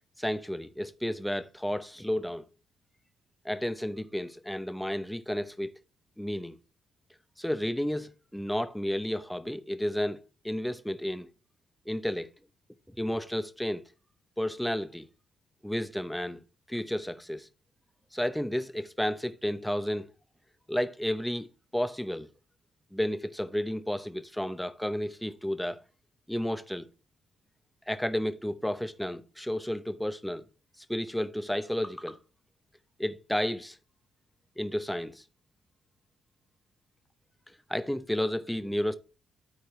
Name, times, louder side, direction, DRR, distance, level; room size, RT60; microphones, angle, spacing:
voice 1, 0.2-2.4 3.4-5.7 6.2-6.6 7.4-11.3 11.9-12.3 13.0-13.8 14.4-15.1 15.6-16.4 16.7-17.5 18.1-20.1 20.7-21.5 21.7-22.3 22.9-25.8 26.3-26.9 27.9-30.4 30.9-32.2 33.0-33.8 34.6-35.2 37.7-39.0, equal, 5° left, 0.8 m, -32 dB
13.0 x 4.4 x 3.1 m
cardioid pair, 90°, 0 cm